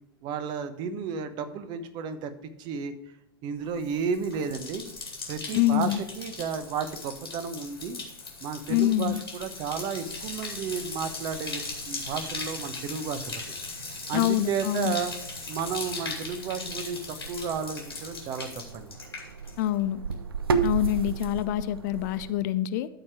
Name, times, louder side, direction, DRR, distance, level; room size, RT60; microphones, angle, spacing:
voice 1, 0.2-2.3 2.6-2.9 3.4-4.8 5.3-8.0 8.4-13.4 14.1-15.1 15.5-19.0, right 6 dB, 35° right, 11 dB, 0.9 m, -32 dB
Bathtub (filling or washing), 3.7-19.8 20.1-20.6, left 3 dB, 80° left, 2.5 m, -39 dB
voice 2, 5.5-6.0 8.7-9.2 14.1-14.9 19.6-20.0 20.6-22.9, left 14 dB, 45° left, 14 dB, 0.5 m, -25 dB
sound 1, 9.8-22.3, right 5 dB, 75° right, 0.7 m, -36 dB
12.5 x 4.3 x 4.8 m, 0.88 s
figure-of-eight pair, 90°, 13 cm